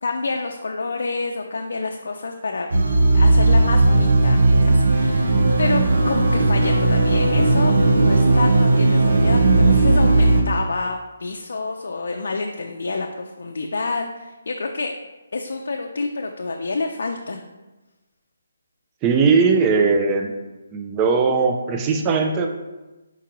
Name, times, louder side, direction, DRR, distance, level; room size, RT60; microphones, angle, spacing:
voice 1, 0.0-2.7 3.1-14.9 15.3-17.4, left 3 dB, 70° left, 2 dB, 0.4 m, -28 dB
sound 1, 2.7-10.4, right 2 dB, 65° right, 0.6 m, -16 dB
voice 2, 19.0-20.3 20.7-22.5, right 5 dB, 15° right, 3 dB, 0.3 m, -19 dB
4.5 x 3.7 x 2.9 m, 1.1 s
hypercardioid pair, 165°, 0 cm